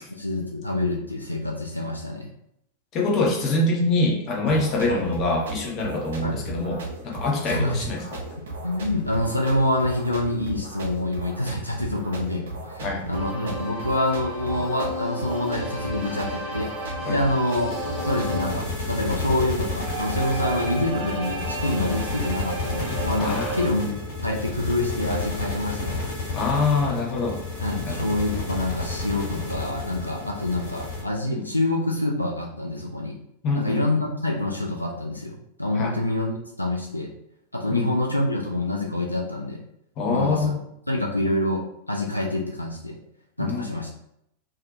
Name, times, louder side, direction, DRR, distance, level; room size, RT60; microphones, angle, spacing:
voice 1, 0.1-2.3 4.9-5.1 6.2-6.4 7.5-7.9 8.6-16.7 17.1-17.7 18.0-23.9 24.2-26.0 27.6-33.2 33.5-37.1 37.5-39.6 40.1-40.5 40.9-43.0 43.4-43.9, left 1 dB, 85° left, -1 dB, 0.3 m, -26 dB
voice 2, 2.9-8.2 12.8-13.0 17.0-17.2 23.2-23.6 26.3-27.4 27.9-28.1 31.3-31.5 33.4-33.9 35.7-36.0 37.7-38.0 40.0-40.6 43.4-43.7, left 2 dB, 35° left, 0 dB, 0.6 m, -25 dB
sound 1, 4.5-18.5, right 2 dB, 65° right, 0.4 m, -36 dB
sound 2, 13.1-18.7 19.5-23.7, right 1 dB, 40° right, 0.8 m, -33 dB
sound 3, 17.7-31.0, left 3 dB, 55° left, 1.2 m, -31 dB
2.4 x 2.1 x 2.5 m, 0.75 s
figure-of-eight pair, 90°, 0 cm